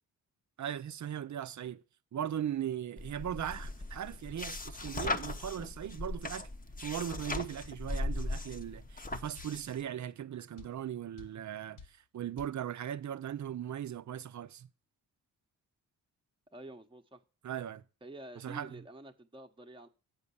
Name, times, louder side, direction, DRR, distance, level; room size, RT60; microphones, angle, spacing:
voice 1, 0.6-1.8 2.1-6.5 6.8-14.7 17.4-17.8 18.4-18.8, right 10 dB, 45° right, 0.7 m, -38 dB
sound 1, 3.0-9.8, left 2 dB, 20° left, 0.9 m, -38 dB
sound 2, 8.2-8.4 9.4-9.6 10.6-10.8 11.2-11.4 11.8-12.0 12.4-12.6, left 5 dB, 50° left, 1.0 m, -51 dB
voice 2, 16.5-17.2 18.0-19.9, right 1 dB, 10° right, 1.0 m, -49 dB
7.7 x 5.2 x 7.0 m
supercardioid pair, 50°, 39 cm